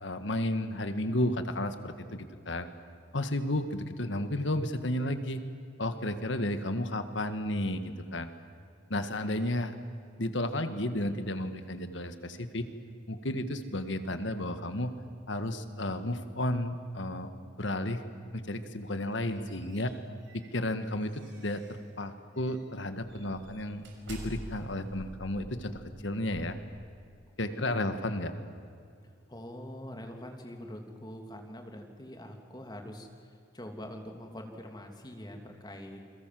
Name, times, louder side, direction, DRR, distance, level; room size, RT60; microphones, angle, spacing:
voice 1, 0.0-2.7 3.1-5.4 5.8-8.3 8.9-9.7 10.2-12.7 13.1-14.9 15.3-17.3 17.6-18.0 18.3-19.9 20.3-26.6 27.4-28.3, left 1 dB, 65° left, 9 dB, 1.7 m, -32 dB
sound 1, 19.0-21.9 22.4-22.6 23.0-27.3, right 1 dB, 65° right, 5.9 m, -48 dB
voice 2, 27.5-28.1 29.3-36.1, left 1 dB, 20° left, 3 dB, 2.9 m, -44 dB
29.0 x 22.0 x 7.7 m, 2.4 s
head